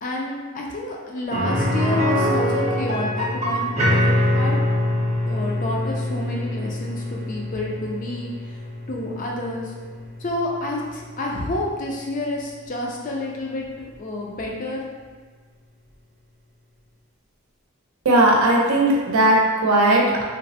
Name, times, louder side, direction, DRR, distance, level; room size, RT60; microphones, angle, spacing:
voice 1, 0.0-4.6 5.3-8.3 8.9-9.7 10.2-14.9, left 1 dB, 40° left, -2 dB, 0.4 m, -29 dB
sound 1, 1.3-11.1 11.4-11.5 13.9-14.0, left 1 dB, 30° right, 0.5 m, -24 dB
voice 2, 18.0-20.2, right 1 dB, 90° right, -2 dB, 0.6 m, -17 dB
3.2 x 2.0 x 2.7 m, 1.5 s
head